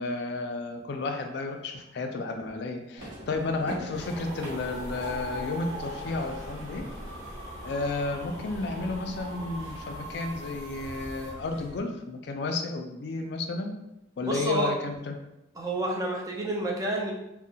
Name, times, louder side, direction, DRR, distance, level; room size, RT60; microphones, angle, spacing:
voice 1, 0.0-6.9 7.6-13.7 14.2-15.2, left 3 dB, 60° left, 4 dB, 0.3 m, -32 dB
sound 1, 3.0-11.8, equal, 85° right, 0.9 m, -45 dB
sound 2, 3.9-11.3, equal, 40° right, 0.8 m, -40 dB
voice 2, 14.2-14.7 15.6-17.1, right 1 dB, 20° right, -1 dB, 0.3 m, -29 dB
2.7 x 2.1 x 2.7 m, 0.90 s
head